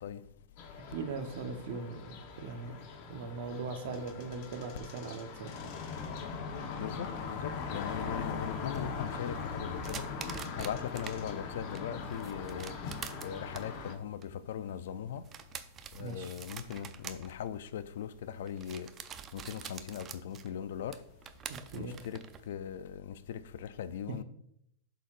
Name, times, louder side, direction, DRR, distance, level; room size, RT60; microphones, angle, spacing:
sound 1, 0.6-13.9, left 5 dB, 50° left, 1.1 m, -40 dB
voice 1, 0.7-2.8 3.1-5.5 16.0-16.4 21.5-22.0 24.1-24.2, right 4 dB, 65° right, 1.0 m, -40 dB
voice 2, 6.7-10.1 10.6-12.7 13.2-14.2 14.5-15.2 16.0-18.9 19.3-21.0 21.7-22.2 22.5-24.2, left 9 dB, 70° left, 0.4 m, -39 dB
sound 2, 7.9-11.2 11.5-22.5, right 8 dB, 30° right, 0.5 m, -47 dB
11.5 x 4.0 x 2.5 m
hypercardioid pair, 120°, 0 cm